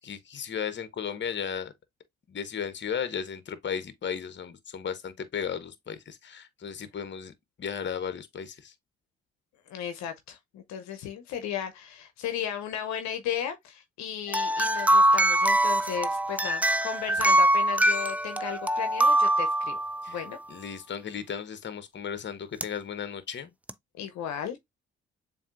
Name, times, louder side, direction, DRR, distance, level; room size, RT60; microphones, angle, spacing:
voice 1, 0.0-1.7 2.3-7.3 7.6-8.7 20.0-20.2 20.5-23.5, left 7 dB, 40° left, 1.0 m, -35 dB
voice 2, 9.7-19.8 20.1-20.4 24.0-24.6, left 9 dB, 70° left, 0.8 m, -35 dB
sound 1, 14.3-20.3 22.6-22.7 23.7-23.8, right 1 dB, 5° right, 0.4 m, -23 dB
7.0 x 2.7 x 2.4 m
hypercardioid pair, 50°, 29 cm